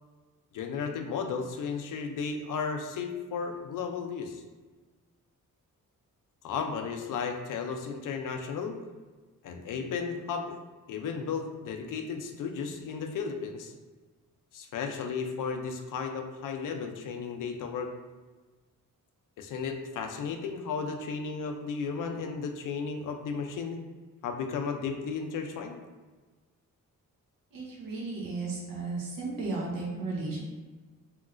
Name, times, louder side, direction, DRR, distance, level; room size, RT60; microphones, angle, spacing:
voice 1, 0.5-4.4 6.4-8.8 9.4-10.6 10.9-13.7 14.5-17.9 19.4-23.8 24.2-25.8, left 5 dB, 70° left, 5 dB, 0.5 m, -34 dB
voice 2, 27.5-30.4, right 3 dB, 90° right, -4 dB, 1.0 m, -34 dB
3.1 x 2.8 x 2.5 m, 1.3 s
wide cardioid pair, 130°, 33 cm